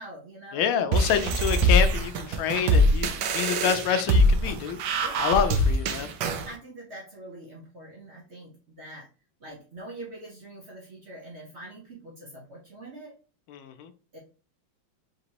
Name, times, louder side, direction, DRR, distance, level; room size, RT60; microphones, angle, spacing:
voice 1, 0.0-1.4 4.9-5.3 6.4-9.1 9.4-13.1 14.1-14.2, right 2 dB, 50° right, 0.8 m, -44 dB
voice 2, 0.5-4.8 5.2-6.1 13.5-13.9, left 8 dB, 90° left, 1.4 m, -27 dB
sound 1, 0.9-6.5, equal, 70° right, 1.1 m, -23 dB
5.0 x 3.0 x 2.8 m
omnidirectional pair, 2.2 m